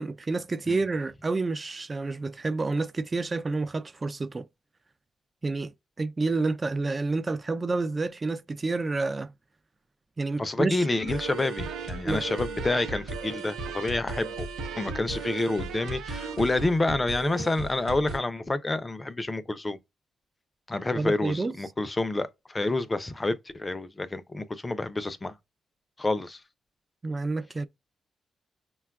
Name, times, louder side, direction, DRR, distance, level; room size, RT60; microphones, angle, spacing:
voice 1, 0.0-4.5 5.4-9.3 10.2-10.9 12.0-12.2 21.0-21.5 27.0-27.6, right 3 dB, 35° right, 0.4 m, -29 dB
voice 2, 10.4-14.5 14.8-19.8 20.7-25.4 26.0-26.4, left 2 dB, 25° left, 0.5 m, -28 dB
sound 1, 10.8-18.2, right 3 dB, 85° right, 0.8 m, -36 dB
5.4 x 2.3 x 2.3 m
supercardioid pair, 55°, 0 cm